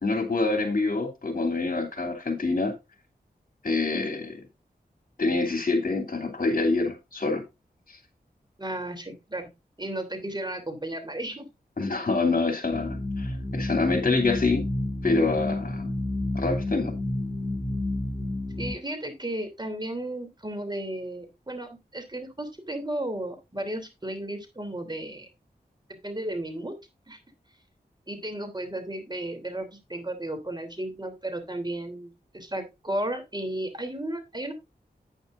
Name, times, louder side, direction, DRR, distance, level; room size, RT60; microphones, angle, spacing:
voice 1, 0.0-2.7 3.6-4.4 5.2-7.4 7.9-8.0 11.8-14.6 15.0-15.9 16.3-16.9, left 3 dB, 55° left, 2.9 m, -26 dB
voice 2, 8.6-9.5 9.8-11.4 18.6-25.3 26.0-26.7 27.1-27.2 28.1-34.5, right 1 dB, 25° right, 3.1 m, -34 dB
sound 1, 12.7-18.7, left 1 dB, 20° left, 3.4 m, -30 dB
10.0 x 9.0 x 2.6 m
cardioid pair, 50°, 17 cm